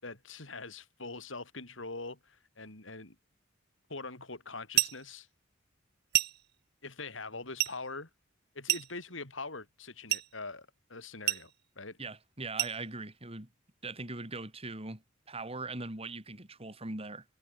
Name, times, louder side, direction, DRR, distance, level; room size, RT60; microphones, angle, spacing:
voice 1, 0.0-3.1 3.9-5.3 6.8-8.1 8.5-12.0, left 3 dB, 75° left, 4.9 m, -43 dB
sound 1, 4.7-5.1 6.1-6.5 7.6-7.8 8.7-9.1 10.1-10.3 11.3-11.5 12.6-12.8, right 15 dB, 55° right, 0.8 m, -30 dB
voice 2, 12.0-13.5 13.8-17.2, right 3 dB, 30° right, 3.7 m, -41 dB
head